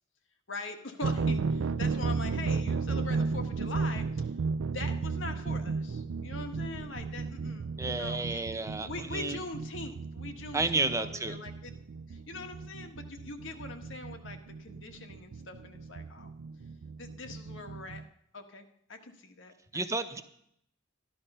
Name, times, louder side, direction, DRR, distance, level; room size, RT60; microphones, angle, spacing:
voice 1, 0.5-4.3 4.6-8.4 8.8-11.7 12.1-16.3 17.0-18.0 18.3-19.8, left 3 dB, 70° left, 5 dB, 1.5 m, -42 dB
sound 1, 1.0-18.0, right 4 dB, 80° right, 0.4 m, -34 dB
voice 2, 7.8-9.4 10.5-11.4 19.7-20.2, right 3 dB, 15° right, 9 dB, 0.7 m, -31 dB
13.0 x 11.5 x 5.5 m, 0.72 s
head